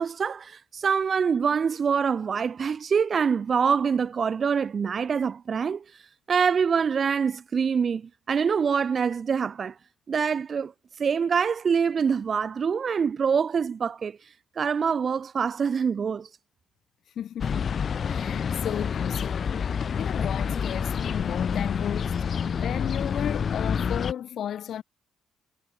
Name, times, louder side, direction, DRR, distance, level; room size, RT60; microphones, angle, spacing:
voice 1, 0.0-5.8 6.3-9.8 10.1-10.7 11.0-14.2 14.6-16.3, right 6 dB, 45° right, 0.9 m, -25 dB
voice 2, 17.2-17.8 18.1-24.8, left 10 dB, 65° left, 3.7 m, -34 dB
sound 1, 17.4-24.1, left 7 dB, 50° left, 1.6 m, -28 dB
cardioid pair, 90°, 0 cm